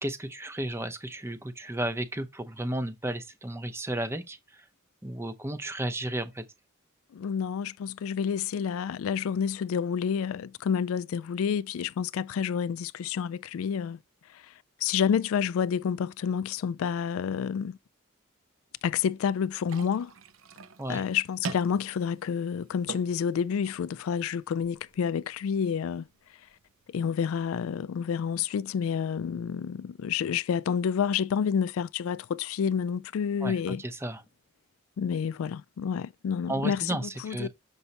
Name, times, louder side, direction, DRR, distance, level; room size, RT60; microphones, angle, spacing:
voice 1, 0.0-4.7 5.0-6.4 20.8-21.0 33.4-34.2 36.5-37.5, right 1 dB, 10° right, 0.6 m, -33 dB
voice 2, 7.1-14.0 14.8-17.8 18.8-20.1 20.9-26.1 26.9-33.8 35.0-37.5, left 7 dB, 80° left, 0.3 m, -29 dB
sound 1, 19.6-27.6, right 3 dB, 75° right, 0.7 m, -45 dB
6.9 x 5.3 x 2.9 m
head